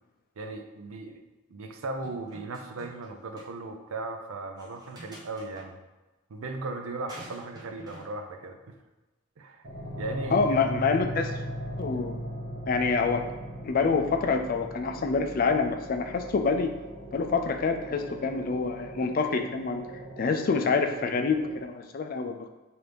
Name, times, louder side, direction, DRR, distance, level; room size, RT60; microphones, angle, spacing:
voice 1, 0.4-1.2 1.5-5.8 6.3-8.8 9.4-9.7 10.0-10.6, right 2 dB, 80° right, 6 dB, 0.5 m, -37 dB
sound 1, 2.0-3.1 3.4-3.5 4.6-5.7 7.1-8.1, right 1 dB, 20° right, 0.7 m, -48 dB
sound 2, 9.6-21.6, equal, 50° right, 1.0 m, -39 dB
voice 2, 10.3-11.4 11.8-12.2 12.7-13.2 13.6-16.7 17.1-19.8 20.2-22.5, left 4 dB, 40° left, 5 dB, 0.3 m, -26 dB
5.9 x 2.6 x 3.4 m, 1.1 s
head